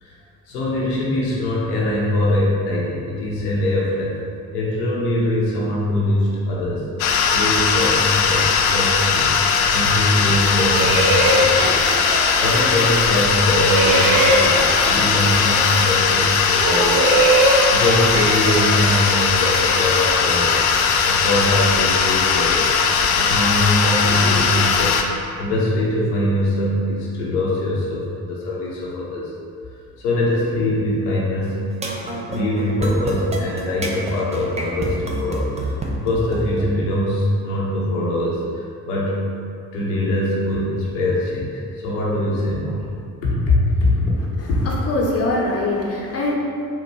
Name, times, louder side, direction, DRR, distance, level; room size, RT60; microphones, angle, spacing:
voice 1, 0.5-4.2 4.5-6.9 7.3-11.9 12.4-20.6 21.0-22.7 23.1-25.0 25.4-29.3 30.0-31.6 32.0-39.2 39.7-42.8 43.2-44.1, left 1 dB, 75° left, -6 dB, 1.0 m, -22 dB
sound 1, 7.0-25.0, left 6 dB, 55° left, 0.5 m, -19 dB
sound 2, 10.5-13.2 13.5-16.1 16.5-20.3, right 2 dB, 70° right, 0.7 m, -22 dB
sound 3, 31.7-36.7, right 2 dB, 15° right, 0.6 m, -28 dB
voice 2, 44.4-46.3, left 2 dB, 30° left, -3 dB, 1.0 m, -23 dB
4.2 x 2.5 x 4.8 m, 2.3 s
figure-of-eight pair, 50°, 47 cm